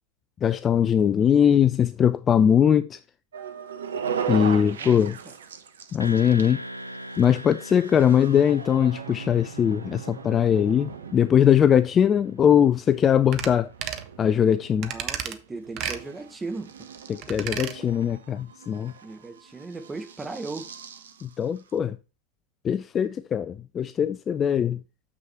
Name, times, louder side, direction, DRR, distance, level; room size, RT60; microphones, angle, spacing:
voice 1, 0.4-3.0 4.3-5.2 5.9-6.6 7.2-13.7 14.2-14.9 17.1-18.9 21.2-22.0 22.6-24.8, left 8 dB, 25° left, 0.3 m, -21 dB
sound 1, 3.3-21.8, right 7 dB, 65° right, 0.8 m, -39 dB
voice 2, 4.6-5.3 14.8-16.7 19.0-20.7, right 3 dB, 10° right, 1.1 m, -37 dB
sound 2, 6.0-10.9, equal, 90° right, 0.5 m, -41 dB
sound 3, 13.3-13.5 13.8-14.1 14.8-15.4 15.8-16.0 17.2-17.8 18.1-18.2, right 10 dB, 35° right, 0.8 m, -32 dB
7.1 x 6.2 x 4.5 m
figure-of-eight pair, 90°, 0 cm